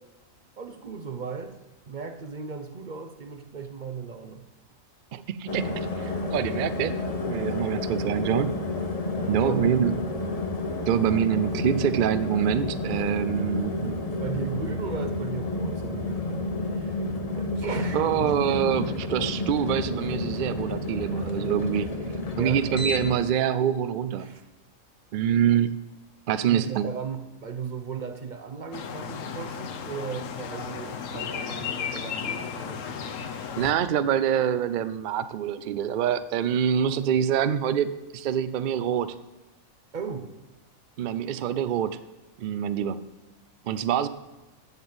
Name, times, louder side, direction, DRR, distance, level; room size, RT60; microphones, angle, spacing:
voice 1, 0.6-1.6 1.9-4.5 9.1-10.3 14.2-17.0 17.4-18.6 22.4-22.7 24.2-24.5 26.3-33.1 39.9-40.3 44.0-44.1, right 6 dB, 45° right, 8 dB, 0.6 m, -36 dB
voice 2, 5.1-6.9 7.3-8.6 9.3-9.9 10.9-14.0 17.9-21.9 22.4-24.3 25.1-25.7 26.3-26.9 33.6-37.9 38.1-39.1 41.0-42.0 42.4-43.0 43.7-44.1, right 9 dB, 85° right, 13 dB, 0.4 m, -25 dB
sound 1, 5.5-23.2, left 2 dB, 30° left, 0.8 m, -30 dB
sound 2, 28.7-33.7, left 7 dB, 70° left, 1.1 m, -34 dB
8.0 x 7.2 x 7.8 m, 1.1 s
omnidirectional pair, 1.4 m